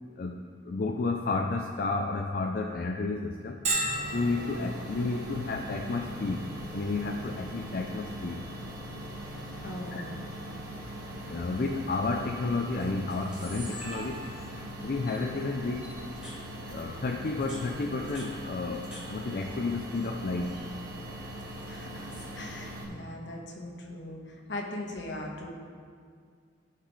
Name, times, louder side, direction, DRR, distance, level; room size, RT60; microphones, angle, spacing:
voice 1, 0.2-3.6 4.1-8.4 9.9-10.1 11.2-14.3 14.8-16.0 16.7-20.6, left 3 dB, 55° left, 2 dB, 0.5 m, -31 dB
Bell, 3.6-19.1, right 2 dB, 40° right, 1.1 m, -42 dB
sound 1, 3.8-22.8, equal, 55° right, 1.5 m, -41 dB
voice 2, 9.6-10.2 21.7-25.5, left 1 dB, 75° left, 0 dB, 1.4 m, -40 dB
Camera, 12.8-12.9 13.1-14.6 15.1-15.2 15.8-16.4 17.2-19.0 19.3-20.0 20.3-20.7 21.5-22.3, right 1 dB, 5° right, 2.6 m, -46 dB
15.5 x 5.8 x 3.2 m, 2.1 s
head